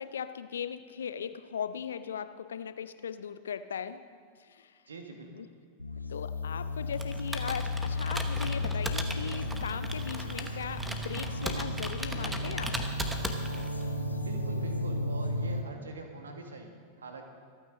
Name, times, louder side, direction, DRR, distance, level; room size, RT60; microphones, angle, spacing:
voice 1, 0.0-4.0 4.4-4.7 5.3-5.5 6.1-12.8, left 7 dB, 65° left, 12 dB, 0.6 m, -38 dB
voice 2, 4.9-5.4 14.2-17.3, right 3 dB, 70° right, 4 dB, 1.7 m, -44 dB
sound 1, 5.8-15.6, left 1 dB, 85° left, 1.0 m, -34 dB
Computer keyboard, 6.9-13.8, right 1 dB, 5° right, 1.1 m, -38 dB
25.0 x 9.3 x 3.8 m, 2.2 s
figure-of-eight pair, 90°, 0 cm